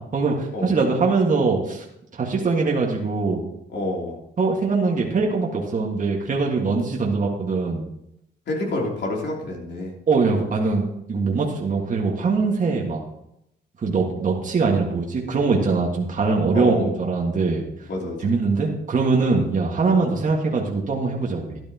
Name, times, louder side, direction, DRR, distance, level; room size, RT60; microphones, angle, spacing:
voice 1, 0.1-1.8 2.1-3.4 4.4-7.8 10.1-13.0 13.8-17.6 18.2-21.6, right 4 dB, 40° right, -1 dB, 1.7 m, -22 dB
voice 2, 3.7-4.2 6.6-6.9 8.5-9.9 16.5-16.9 17.9-18.2, left 2 dB, 60° left, -1 dB, 3.1 m, -27 dB
12.5 x 10.5 x 2.9 m, 0.80 s
cardioid pair, 90°, 20 cm